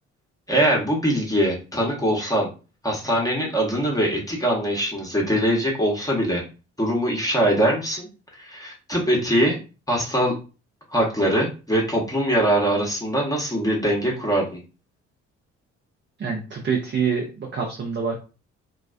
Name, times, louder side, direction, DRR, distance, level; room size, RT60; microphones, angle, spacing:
voice 1, 0.5-2.5 2.8-6.4 6.8-9.6 9.9-10.3 10.9-14.6, right 1 dB, 10° left, -3 dB, 0.9 m, -22 dB
voice 2, 16.2-18.2, right 6 dB, 30° right, 0 dB, 0.6 m, -26 dB
2.2 x 2.2 x 2.4 m, 0.32 s
figure-of-eight pair, 40°, 35 cm